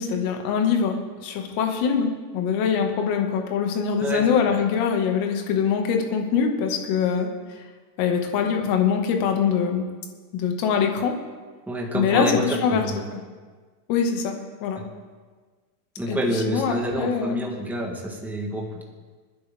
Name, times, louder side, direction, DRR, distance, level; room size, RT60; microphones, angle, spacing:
voice 1, 0.0-7.3 8.0-9.9 10.3-11.1 11.9-12.8 13.1-13.2 13.9-14.8 16.1-17.4, left 6 dB, 45° left, 3 dB, 2.1 m, -23 dB
voice 2, 11.7-13.0 14.8-14.9 16.0-18.8, right 1 dB, 5° right, -1 dB, 1.5 m, -27 dB
26.5 x 10.0 x 3.7 m, 1.4 s
supercardioid pair, 170°, 48 cm